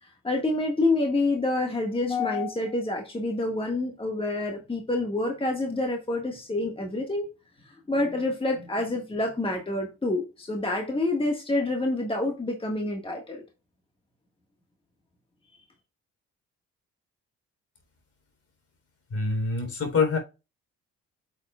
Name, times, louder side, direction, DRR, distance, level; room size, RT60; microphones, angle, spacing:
voice 1, 0.0-7.3 7.6-13.4, left 2 dB, 20° left, 2 dB, 1.7 m, -27 dB
voice 2, 19.1-20.2, left 4 dB, 50° left, 4 dB, 3.7 m, -25 dB
8.6 x 6.8 x 2.4 m, 0.28 s
cardioid pair, 90°, 30 cm